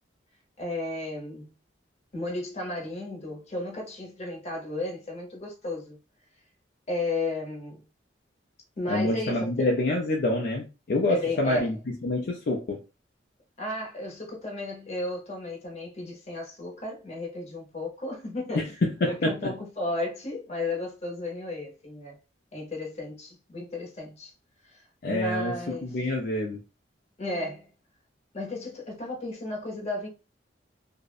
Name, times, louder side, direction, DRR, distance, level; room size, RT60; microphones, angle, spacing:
voice 1, 0.6-1.6 2.1-6.0 6.9-7.9 8.8-9.7 11.1-11.7 13.6-18.7 19.1-22.2 22.5-24.3 24.6-25.9 27.2-27.7 28.3-30.1, left 2 dB, 35° left, 0.9 m, -34 dB
voice 2, 8.9-12.8 18.5-19.5 25.0-26.6, left 2 dB, 60° left, 0.5 m, -27 dB
2.5 x 2.0 x 2.4 m
head